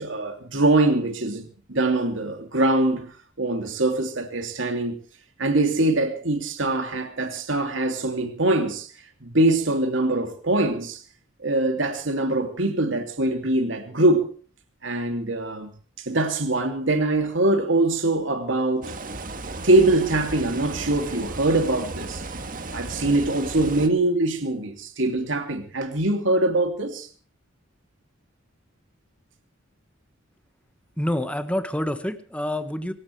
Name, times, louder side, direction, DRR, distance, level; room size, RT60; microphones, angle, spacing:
voice 1, 0.0-5.0 5.4-8.9 9.2-11.0 11.4-14.3 14.8-15.7 16.0-18.9 19.6-22.2 22.7-27.1, right 2 dB, 70° right, 2.9 m, -23 dB
sound 1, 18.8-23.9, right 2 dB, 45° right, 1.9 m, -35 dB
voice 2, 31.0-32.9, left 1 dB, 5° left, 1.5 m, -27 dB
26.0 x 15.5 x 3.4 m
head